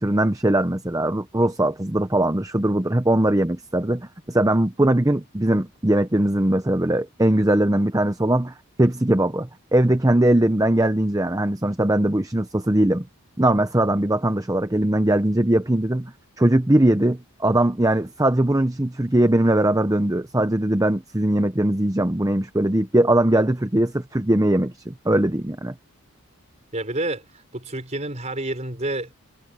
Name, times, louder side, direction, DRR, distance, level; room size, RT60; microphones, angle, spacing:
voice 1, 0.0-13.0 13.4-25.7, right 1 dB, 15° right, 0.8 m, -20 dB
voice 2, 26.7-29.2, right 2 dB, 30° right, 4.7 m, -29 dB
head